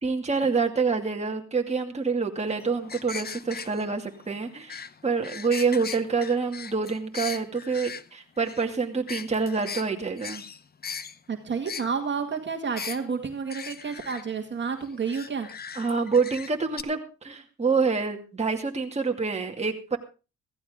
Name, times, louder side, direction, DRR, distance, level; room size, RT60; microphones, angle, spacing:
voice 1, 0.0-10.4 15.8-20.0, right 4 dB, 20° right, 2 dB, 2.3 m, -27 dB
sound 1, 2.5-8.0 8.4-8.6 9.1-9.9 10.2-11.2 11.7-11.9 12.8-13.0 13.5-14.2 15.1-16.5 16.8-16.9, left 6 dB, 30° left, 0.8 m, -39 dB
voice 2, 11.3-15.5, right 5 dB, 35° right, 4 dB, 2.1 m, -30 dB
15.5 x 15.0 x 3.7 m, 0.33 s
cardioid pair, 90°, 30 cm